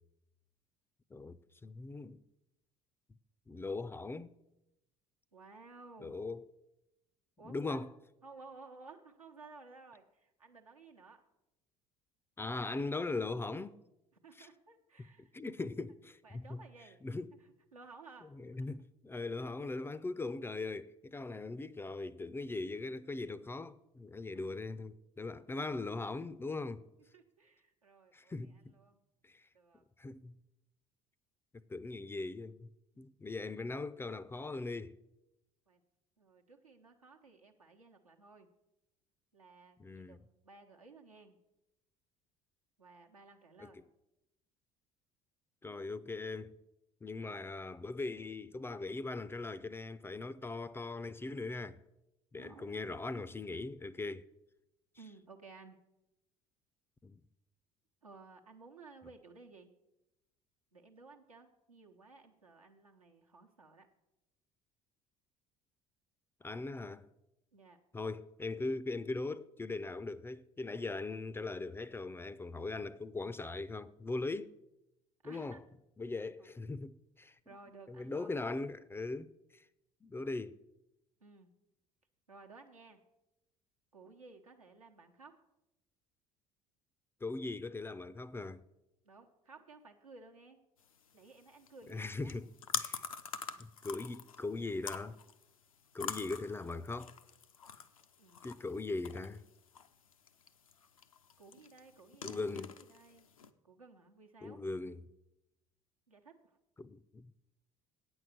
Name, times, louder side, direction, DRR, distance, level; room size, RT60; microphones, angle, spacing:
voice 1, 1.1-2.2 3.5-4.3 6.0-6.4 7.4-7.9 12.4-13.8 14.4-14.5 15.3-16.6 17.0-17.3 18.3-26.9 28.1-28.8 29.2-29.5 30.0-30.4 31.7-32.7 33.0-34.9 39.8-40.2 43.6-43.7 45.6-46.5 47.0-51.8 52.3-54.3 57.0-57.2 66.4-67.1 67.9-74.6 75.2-75.6 76.0-77.4 77.9-79.7 80.0-80.6 87.2-88.6 91.9-93.0 93.6-95.2 95.9-97.2 98.4-99.4 102.2-102.7 104.4-105.0 106.8-107.3, left 3 dB, 15° left, 0.4 m, -40 dB
voice 2, 5.3-6.2 7.4-7.8 8.2-11.2 14.2-15.3 16.2-17.0 17.3-18.3 24.3-24.5 27.1-29.0 29.5-29.8 32.9-33.1 35.7-35.8 36.2-38.5 39.3-41.4 42.8-43.8 52.4-52.7 55.0-55.8 58.0-59.7 60.7-63.9 67.5-67.8 75.2-75.6 76.4-76.5 77.5-78.4 81.2-81.5 82.3-83.0 83.9-85.3 89.0-90.6 91.1-92.3 98.2-98.5 101.4-103.3 103.6-104.6 106.1-106.6, right 3 dB, 85° right, 0.9 m, -56 dB
sound 1, 90.8-103.5, left 7 dB, 85° left, 0.5 m, -46 dB
8.9 x 6.3 x 7.9 m
figure-of-eight pair, 60°, 17 cm